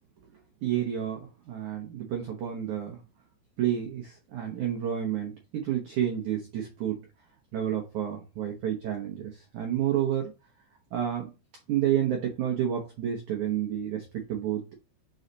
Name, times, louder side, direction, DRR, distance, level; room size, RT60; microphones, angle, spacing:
voice 1, 0.6-3.0 3.6-7.0 7.5-10.3 10.9-11.3 11.7-14.7, right 10 dB, 85° right, 1 dB, 1.7 m, -30 dB
5.6 x 4.8 x 4.0 m, 0.30 s
omnidirectional pair, 5.1 m